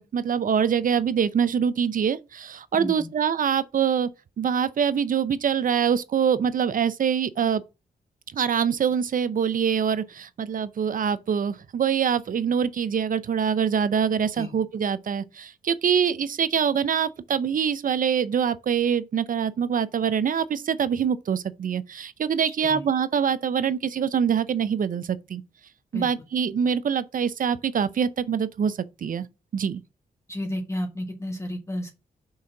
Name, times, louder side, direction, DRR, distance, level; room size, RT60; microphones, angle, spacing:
voice 1, 0.0-4.1 4.4-7.6 8.3-25.4 25.9-29.3 29.5-29.8, right 7 dB, 60° right, 0.7 m, -24 dB
voice 2, 2.7-3.1 14.4-14.5 22.6-22.8 25.9-26.1 30.3-31.9, left 1 dB, 20° left, 1.5 m, -32 dB
5.6 x 3.7 x 5.7 m
supercardioid pair, 50°, 16 cm